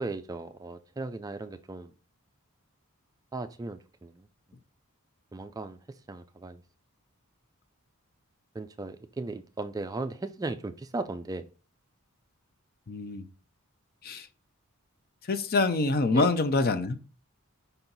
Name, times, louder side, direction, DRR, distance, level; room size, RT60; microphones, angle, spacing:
voice 1, 0.0-1.9 3.3-4.1 5.3-5.8 6.1-6.6 8.6-11.5 16.1-16.3, right 3 dB, 15° right, 0.3 m, -36 dB
voice 2, 12.9-13.3 14.0-14.3 15.2-17.0, left 3 dB, 45° left, 0.6 m, -26 dB
5.5 x 4.4 x 3.9 m
head